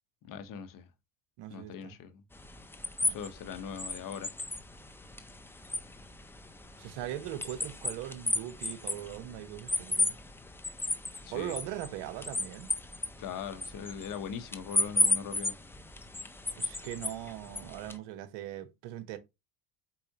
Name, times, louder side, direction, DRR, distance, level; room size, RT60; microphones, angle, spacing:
voice 1, 0.3-0.8 1.5-2.2 3.1-4.3 11.2-11.5 13.2-15.6, left 7 dB, 45° left, 0.9 m, -40 dB
voice 2, 1.4-2.0 3.0-3.2 6.8-10.2 11.3-12.7 16.6-19.2, right 12 dB, 65° right, 1.0 m, -40 dB
sound 1, 2.3-18.0, left 2 dB, 5° left, 0.3 m, -35 dB
4.6 x 4.1 x 2.8 m
supercardioid pair, 100°, 45 cm